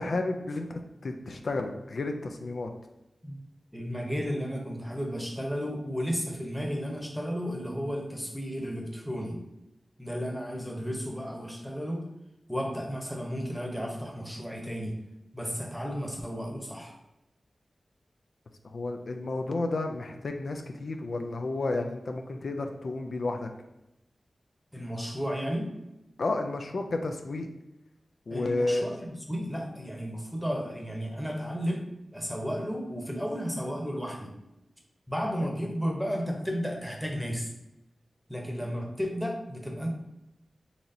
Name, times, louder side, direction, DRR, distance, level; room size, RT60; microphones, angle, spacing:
voice 1, 0.0-2.7 18.7-23.5 26.2-27.5 28.3-28.9, left 2 dB, 75° left, 4 dB, 0.3 m, -31 dB
voice 2, 3.7-9.4 10.0-12.0 12.5-15.0 15.3-17.0 24.7-25.7 28.3-31.8 32.1-34.3 35.1-37.5 38.3-39.9, equal, ahead, 0 dB, 0.9 m, -33 dB
4.0 x 2.9 x 2.6 m, 0.93 s
cardioid pair, 55°, 0 cm